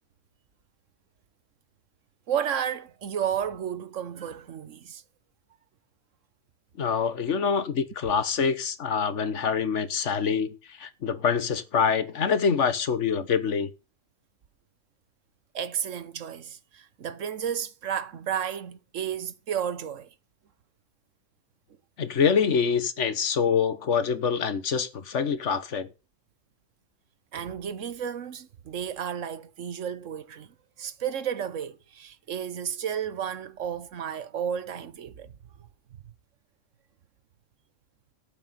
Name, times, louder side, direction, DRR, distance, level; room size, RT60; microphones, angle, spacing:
voice 1, 2.3-5.0 15.5-20.1 27.3-35.3, right 8 dB, 85° right, 1.3 m, -32 dB
voice 2, 6.8-13.7 22.0-25.9, left 6 dB, 70° left, 1.5 m, -25 dB
12.5 x 8.7 x 4.1 m
omnidirectional pair, 1.3 m